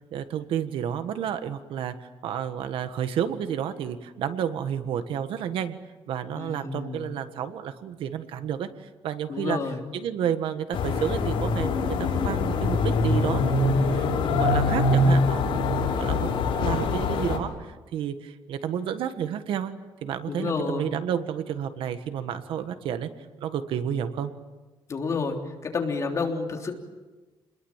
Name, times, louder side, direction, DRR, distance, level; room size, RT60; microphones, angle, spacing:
voice 1, 0.1-5.8 6.1-19.7 20.0-23.1 23.4-24.3, right 9 dB, 80° right, 10 dB, 1.6 m, -31 dB
voice 2, 6.3-7.0 9.3-9.7 20.2-20.9 24.9-25.4 25.6-26.7, left 4 dB, 35° left, 2 dB, 3.4 m, -29 dB
sound 1, 10.7-17.4, left 3 dB, 85° left, 6.1 m, -24 dB
29.5 x 21.5 x 7.4 m, 1.2 s
cardioid pair, 155°, 9 cm